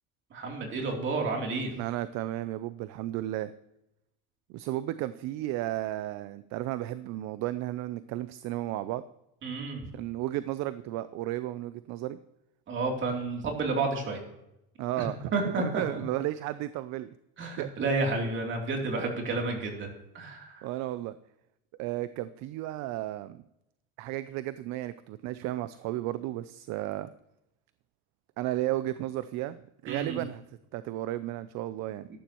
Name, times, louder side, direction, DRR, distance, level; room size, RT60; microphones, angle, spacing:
voice 1, 0.3-1.7 9.4-9.8 12.7-14.2 15.0-15.1 15.3-16.0 17.4-20.6 29.9-30.2, right 3 dB, 35° right, 1 dB, 3.1 m, -31 dB
voice 2, 1.8-3.5 4.5-9.0 9.9-12.2 14.8-17.1 17.6-17.7 19.0-19.1 20.6-21.2 21.8-23.4 24.0-27.1 28.4-29.6 29.8-30.4 30.7-32.1, right 15 dB, 60° right, 14 dB, 0.5 m, -33 dB
13.5 x 11.5 x 3.0 m, 0.85 s
cardioid pair, 145°, 32 cm